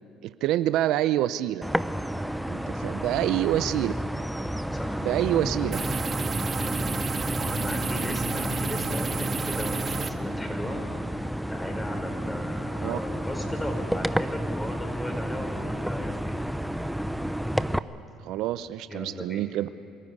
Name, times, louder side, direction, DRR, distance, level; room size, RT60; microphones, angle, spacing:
voice 1, 0.2-1.6 2.5-3.9 5.0-5.8 12.8-13.0 18.2-19.7, right 13 dB, 70° right, 14 dB, 0.5 m, -26 dB
sound 1, 1.6-17.8, equal, ahead, 0.7 m, -31 dB
voice 2, 4.7-5.4 7.4-10.8 11.5-16.3 18.9-19.4, left 1 dB, 15° left, 3 dB, 5.4 m, -36 dB
sound 2, 5.7-10.1, right 4 dB, 35° right, 1.1 m, -31 dB
26.0 x 14.5 x 9.7 m, 2.3 s
supercardioid pair, 75°, 0 cm